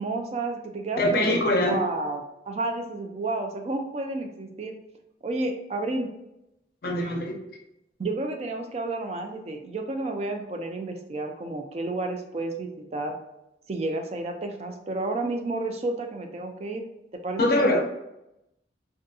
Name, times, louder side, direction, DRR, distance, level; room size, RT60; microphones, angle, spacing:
voice 1, 0.0-4.7 5.2-6.1 8.0-13.2 13.7-16.8 17.1-17.8, right 2 dB, 35° right, 4 dB, 0.3 m, -31 dB
voice 2, 1.0-1.8 6.8-7.4 17.4-17.8, left 1 dB, 55° left, 2 dB, 0.5 m, -23 dB
2.6 x 2.5 x 2.3 m, 0.88 s
head